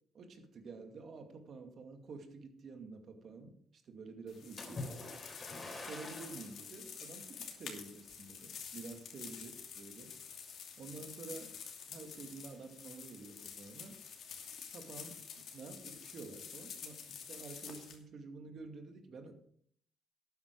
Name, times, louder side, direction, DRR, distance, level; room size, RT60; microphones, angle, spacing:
voice 1, 0.1-4.9 5.7-10.1 10.8-11.6 11.9-14.0 14.7-19.3, right 4 dB, 60° right, 5 dB, 2.3 m, -50 dB
sound 1, 4.3-18.0, left 7 dB, 70° left, 2.6 m, -49 dB
Splash splatter, 4.6-6.6 7.3-7.5 8.1-8.2, left 2 dB, 35° left, 3.6 m, -45 dB
12.0 x 9.7 x 4.8 m, 0.62 s
cardioid pair, 90°, 0 cm